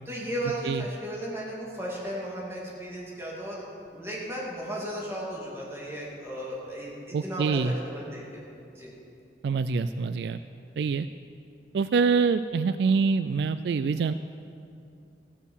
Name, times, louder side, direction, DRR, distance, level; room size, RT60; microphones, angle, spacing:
voice 1, 0.0-8.4 8.7-8.9, right 1 dB, 15° right, -5 dB, 2.6 m, -35 dB
voice 2, 7.1-7.7 9.4-10.4 10.8-11.1 11.7-14.1, right 5 dB, 65° right, 12 dB, 0.3 m, -25 dB
14.5 x 8.3 x 7.3 m, 2.6 s
head